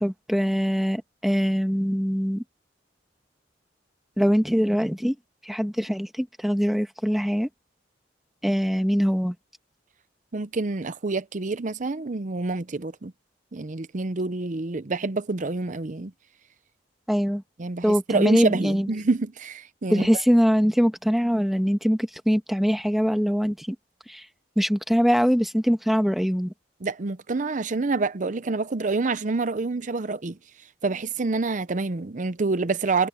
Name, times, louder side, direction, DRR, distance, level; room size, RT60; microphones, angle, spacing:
voice 1, 0.0-2.4 4.2-5.1 5.4-7.5 8.4-9.3 17.1-17.4 17.8-18.9 19.9-23.7 24.1-24.2 24.6-26.5, equal, ahead, 1.6 m, -23 dB
voice 2, 10.3-13.1 13.5-16.1 17.6-20.1 26.8-30.4 30.8-33.1, right 3 dB, 45° right, 0.7 m, -27 dB
head